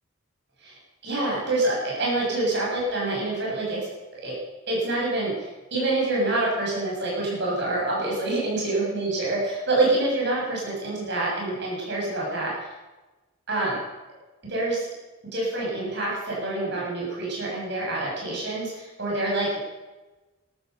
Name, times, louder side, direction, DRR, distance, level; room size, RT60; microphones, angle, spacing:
voice 1, 0.6-3.9 4.2-4.4 4.7-12.7 13.5-13.8 14.5-14.9 15.3-19.6, right 2 dB, 55° right, -4 dB, 7.6 m, -26 dB
14.0 x 13.5 x 6.9 m, 1.1 s
head